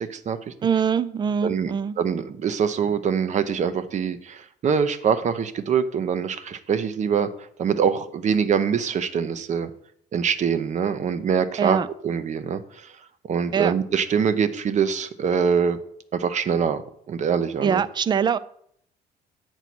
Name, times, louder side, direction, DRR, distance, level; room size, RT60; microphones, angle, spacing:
voice 1, 0.0-0.5 1.4-9.7 10.1-12.9 13.3-15.8 16.1-16.8 17.1-17.8, right 7 dB, 45° right, 12 dB, 0.8 m, -24 dB
voice 2, 0.6-2.0 11.6-11.9 13.5-13.7 17.6-18.4, right 7 dB, 25° right, 17 dB, 0.4 m, -23 dB
8.1 x 4.4 x 6.1 m, 0.66 s
cardioid pair, 110°, 17 cm